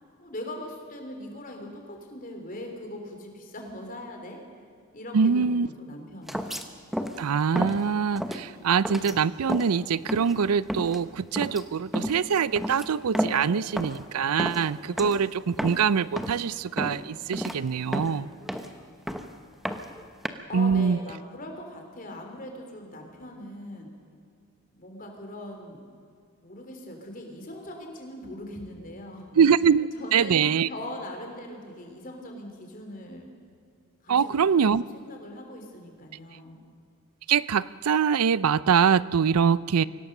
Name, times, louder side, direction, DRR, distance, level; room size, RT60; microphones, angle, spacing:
voice 1, 0.2-4.4 4.9-6.4 20.5-23.9 24.7-25.8 26.4-29.4 29.9-33.3 34.0-36.6, left 1 dB, 40° left, 2 dB, 3.4 m, -40 dB
voice 2, 5.1-5.7 7.2-18.3 20.5-21.0 29.4-30.7 34.1-34.8 37.3-39.8, right 6 dB, 90° right, 19 dB, 0.5 m, -24 dB
sound 1, 6.3-6.7 6.9-7.2 7.5-7.8 8.1-8.4 8.8-9.2 9.5-9.8 10.1-10.4 10.7-11.0 11.4-11.6 11.9-12.2 12.6-13.5 13.8-14.1 14.4-14.7 15.0-15.2 15.5-15.9 16.2-16.4 16.8-17.0 17.3-17.6 17.9-18.8 19.1-19.3 19.6-20.3, equal, ahead, 0.9 m, -31 dB
24.5 x 17.0 x 6.7 m, 2.4 s
head